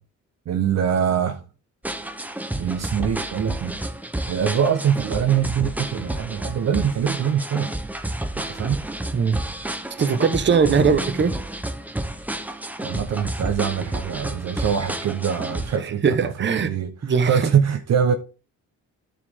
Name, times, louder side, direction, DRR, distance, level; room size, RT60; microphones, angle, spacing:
voice 1, 0.5-1.4 2.5-3.8 4.3-7.7 8.4-8.8 10.7-11.0 12.8-16.9 17.3-18.1, right 8 dB, 60° right, 0.9 m, -23 dB
sound 1, 1.8-15.8, right 1 dB, 5° right, 0.9 m, -30 dB
voice 2, 10.0-11.4 15.8-16.7 17.0-17.5, right 5 dB, 40° right, 1.1 m, -20 dB
12.0 x 5.1 x 3.6 m
cardioid pair, 90°, 30 cm